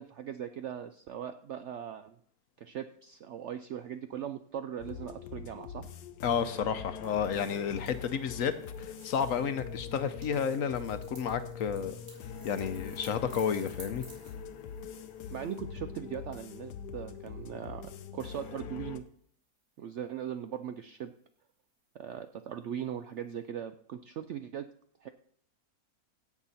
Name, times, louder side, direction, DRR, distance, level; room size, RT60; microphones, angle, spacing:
voice 1, 0.0-2.2 2.6-5.8 15.3-17.8 18.1-19.0 19.8-21.1 21.9-24.7 25.0-25.1, right 9 dB, 70° right, 9 dB, 0.7 m, -39 dB
sound 1, 4.8-19.0, left 6 dB, 85° left, 1.4 m, -43 dB
voice 2, 6.2-11.9 12.4-14.0, left 7 dB, 65° left, 11 dB, 1.0 m, -31 dB
sound 2, 7.0-15.6, right 1 dB, 40° right, 4.0 m, -56 dB
16.5 x 6.0 x 4.1 m, 0.63 s
omnidirectional pair, 1.7 m